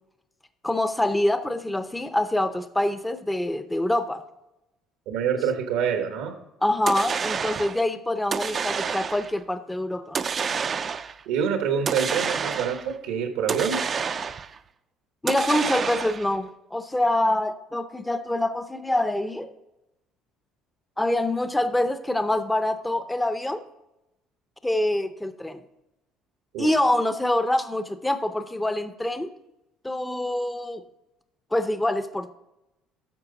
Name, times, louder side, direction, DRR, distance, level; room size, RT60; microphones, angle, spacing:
voice 1, 0.6-4.2 6.6-10.2 15.2-19.5 21.0-23.6 24.6-25.6 26.6-29.3 29.8-30.8 31.5-32.3, left 1 dB, 10° left, 11 dB, 0.6 m, -25 dB
voice 2, 5.1-6.3 11.3-13.8 26.5-26.7, right 7 dB, 90° right, 5 dB, 1.2 m, -26 dB
sound 1, 6.9-7.8 8.3-9.4 10.1-11.2 11.9-12.9 13.5-14.6 15.3-16.4, right 6 dB, 35° right, 0.4 m, -29 dB
10.5 x 6.7 x 3.9 m, 0.92 s
cardioid pair, 120°, 0 cm